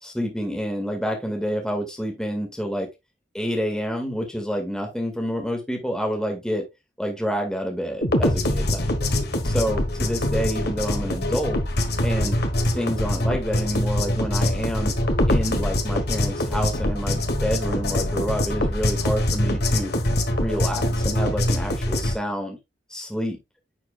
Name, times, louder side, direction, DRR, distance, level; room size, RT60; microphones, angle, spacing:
voice 1, 0.0-2.9 3.3-6.7 7.0-11.6 12.0-12.4 12.7-15.0 15.3-19.9 20.3-22.6 22.9-23.4, equal, 5° left, 2.2 m, -28 dB
sound 1, 8.0-22.1, left 1 dB, 60° left, 1.6 m, -23 dB
10.0 x 6.5 x 2.5 m
head